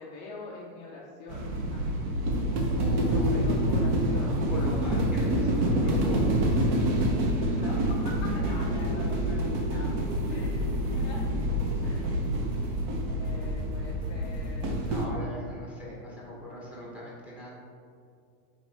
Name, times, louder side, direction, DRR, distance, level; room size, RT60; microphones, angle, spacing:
voice 1, 0.0-1.9 3.1-4.4 5.2-5.5 7.3-9.9 10.3-11.4 11.8-12.2 13.1-14.9, left 3 dB, 30° left, -3 dB, 0.5 m, -44 dB
sound 1, 1.3-15.1, right 1 dB, 30° right, 0.7 m, -27 dB
voice 2, 2.7-3.4 4.2-6.6 9.7-9.9 14.8-17.5, left 1 dB, 5° right, -5 dB, 1.0 m, -40 dB
8.1 x 4.1 x 3.4 m, 2.5 s
supercardioid pair, 165°, 43 cm